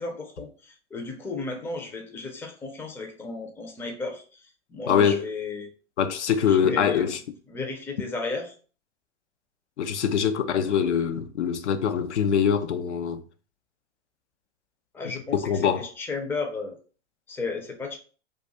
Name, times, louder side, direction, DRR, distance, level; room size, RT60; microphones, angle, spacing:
voice 1, 0.0-4.2 4.7-5.7 6.4-7.1 7.5-8.5 14.9-15.4 15.8-16.7 17.3-18.0, left 3 dB, 5° left, 0.4 m, -34 dB
voice 2, 4.9-5.2 6.0-7.2 9.8-13.2 15.3-15.9, left 8 dB, 75° left, 0.5 m, -23 dB
2.4 x 2.3 x 4.0 m
figure-of-eight pair, 100°, 35 cm